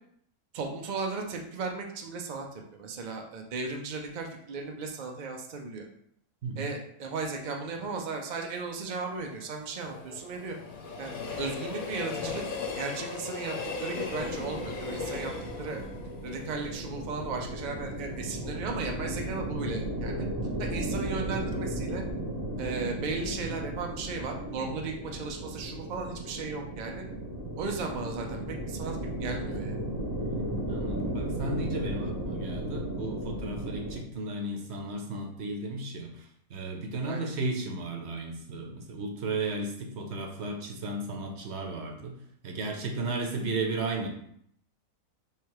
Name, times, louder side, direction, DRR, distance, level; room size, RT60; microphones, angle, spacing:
voice 1, 0.5-5.9 6.6-10.6 11.0-12.4 12.7-15.3 15.6-15.8 16.2-20.3 20.6-22.0 22.6-27.0 27.6-29.8 37.0-37.3, right 4 dB, 80° right, 2 dB, 0.4 m, -36 dB
Train, 8.7-17.8 18.2-18.3, left 4 dB, 70° left, 1.1 m, -38 dB
sound 1, 14.1-34.0, right 1 dB, 20° right, 0.7 m, -35 dB
voice 2, 30.2-42.2 42.4-44.1, right 2 dB, 55° right, 2 dB, 0.9 m, -34 dB
3.2 x 3.2 x 4.7 m, 0.69 s
omnidirectional pair, 1.6 m